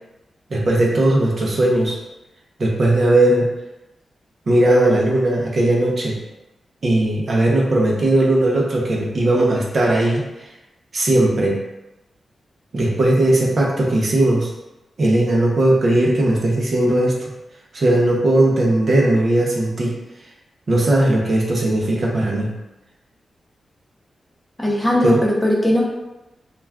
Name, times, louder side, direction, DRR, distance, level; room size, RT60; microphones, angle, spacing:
voice 1, 0.5-1.9 2.6-3.5 4.5-6.2 6.8-10.2 10.9-11.6 12.7-14.5 15.0-17.3 17.7-19.9 20.7-22.5 25.0-25.2, right 1 dB, 55° right, -3 dB, 0.6 m, -17 dB
voice 2, 24.6-25.8, left 1 dB, 10° left, -3 dB, 0.6 m, -18 dB
2.4 x 2.2 x 3.4 m, 0.99 s
cardioid pair, 85°, 0 cm